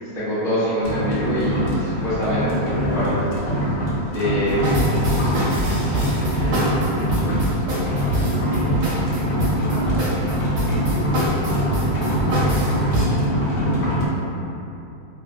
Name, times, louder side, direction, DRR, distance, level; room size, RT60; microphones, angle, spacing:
voice 1, 0.1-3.2 4.1-4.7 5.6-6.1, equal, 5° left, -13 dB, 0.7 m, -24 dB
sound 1, 0.8-14.1, equal, 75° left, 1.1 m, -23 dB
voice 2, 4.1-9.1 9.6-10.2 10.8-10.9 11.3-12.3 12.6-13.1 13.8-14.6, equal, 50° left, -15 dB, 0.9 m, -41 dB
sound 2, 4.5-13.1, right 1 dB, 60° right, 1.0 m, -25 dB
2.9 x 2.5 x 2.3 m, 2.8 s
omnidirectional pair, 1.7 m